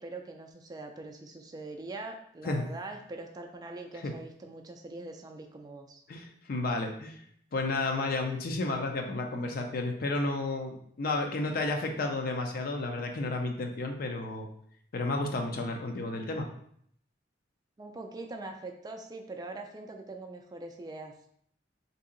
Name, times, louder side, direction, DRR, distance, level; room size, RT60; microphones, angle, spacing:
voice 1, 0.0-6.0 17.8-21.3, right 2 dB, 20° right, 3 dB, 0.3 m, -43 dB
voice 2, 6.1-7.2 7.5-14.5 14.9-16.5, left 2 dB, 55° left, 4 dB, 0.5 m, -32 dB
2.8 x 2.7 x 3.7 m, 0.67 s
head